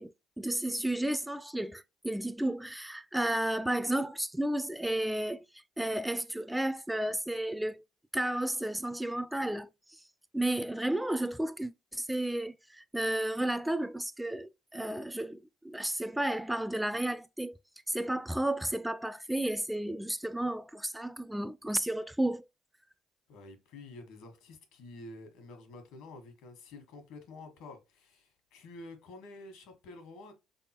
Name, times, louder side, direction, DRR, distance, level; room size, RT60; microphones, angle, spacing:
voice 1, 0.0-5.4 5.8-7.8 8.1-9.7 10.3-17.6 17.9-22.5, right 1 dB, 5° right, 0.3 m, -32 dB
voice 2, 23.3-30.3, left 2 dB, 80° left, 1.2 m, -49 dB
4.0 x 3.4 x 2.8 m
supercardioid pair, 65°, 0 cm